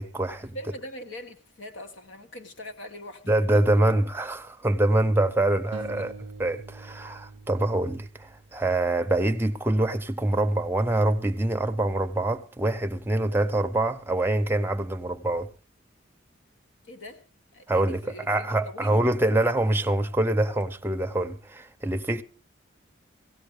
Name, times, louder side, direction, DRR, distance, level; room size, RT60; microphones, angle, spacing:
voice 1, 0.0-0.6 3.3-6.1 6.4-15.5 17.7-22.2, right 1 dB, 10° right, 0.7 m, -25 dB
voice 2, 0.5-3.6 5.9-6.1 16.8-17.2 17.5-19.1, equal, 70° left, 1.5 m, -42 dB
sound 1, 5.7-8.9, right 4 dB, 75° right, 0.6 m, -44 dB
17.0 x 16.5 x 3.3 m
head